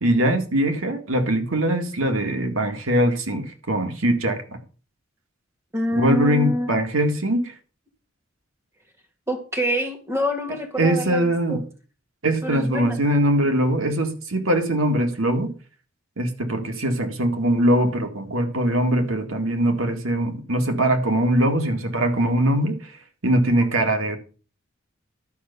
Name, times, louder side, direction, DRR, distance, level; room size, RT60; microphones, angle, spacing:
voice 1, 0.0-4.4 5.9-7.5 10.8-11.6 12.2-15.5 16.2-22.9 23.2-24.2, right 1 dB, 80° right, 5 dB, 2.0 m, -22 dB
voice 2, 5.7-6.7 9.3-11.6 12.4-13.0, left 1 dB, 15° right, 3 dB, 1.9 m, -26 dB
12.0 x 5.6 x 6.9 m, 0.36 s
head